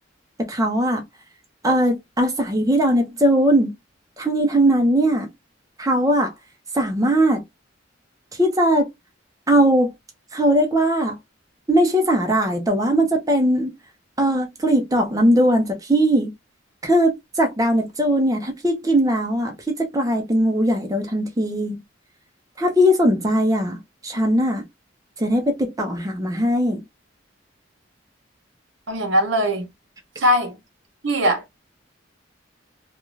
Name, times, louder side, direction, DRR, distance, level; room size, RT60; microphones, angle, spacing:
voice 1, 0.4-1.0 1.6-3.7 4.2-5.3 5.8-6.3 6.7-7.4 8.4-8.9 9.5-9.9 10.3-11.2 11.7-13.7 14.2-16.3 16.8-21.8 22.6-24.6 25.2-26.8, equal, 20° right, 0.6 m, -19 dB
voice 2, 28.9-29.7 30.2-30.6 31.0-31.4, equal, 70° right, 0.8 m, -20 dB
2.4 x 2.3 x 3.1 m
head